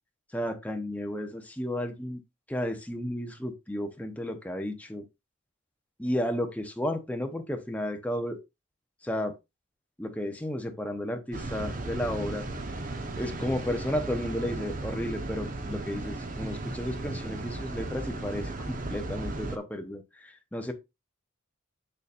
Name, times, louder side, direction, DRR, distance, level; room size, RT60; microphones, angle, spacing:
voice 1, 0.3-2.2 2.5-5.1 6.0-8.4 9.0-9.3 10.0-12.5 13.2-20.7, left 1 dB, 5° left, 0.8 m, -33 dB
sound 1, 11.3-19.6, right 2 dB, 40° right, 0.9 m, -35 dB
6.9 x 6.8 x 2.5 m
head